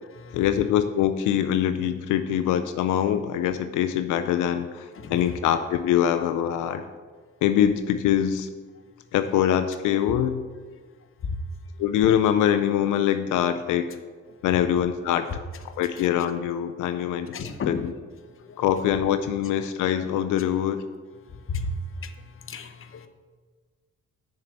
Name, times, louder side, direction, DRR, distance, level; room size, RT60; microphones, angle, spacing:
voice 1, 0.3-6.8 7.4-8.5 9.1-10.4 11.8-14.0 14.4-15.3 15.6-17.9 18.6-20.8, left 10 dB, 90° left, 10 dB, 0.5 m, -24 dB
voice 2, 17.3-17.8 18.6-18.7 21.5-21.7 22.5-23.1, left 4 dB, 45° left, 8 dB, 1.0 m, -32 dB
6.8 x 6.6 x 7.3 m, 1.5 s
cardioid pair, 90°, 30 cm